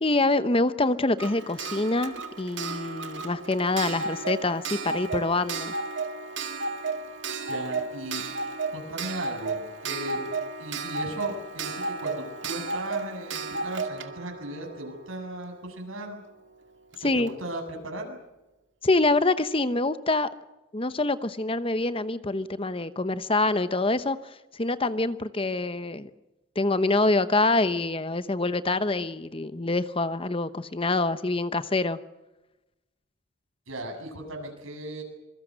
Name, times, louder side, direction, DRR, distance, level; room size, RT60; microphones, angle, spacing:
voice 1, 0.0-5.7 17.0-17.3 18.8-20.3 20.7-24.2 24.5-26.1 26.6-32.0, left 2 dB, 25° left, 12 dB, 0.9 m, -25 dB
Clock, 1.2-15.8 16.9-17.0 17.3-17.4, right 4 dB, 60° right, 2.2 m, -33 dB
voice 2, 7.5-10.3 10.6-16.2 16.9-18.2 33.7-35.0, right 1 dB, 85° right, 3 dB, 8.0 m, -37 dB
27.0 x 23.0 x 6.4 m, 1.0 s
head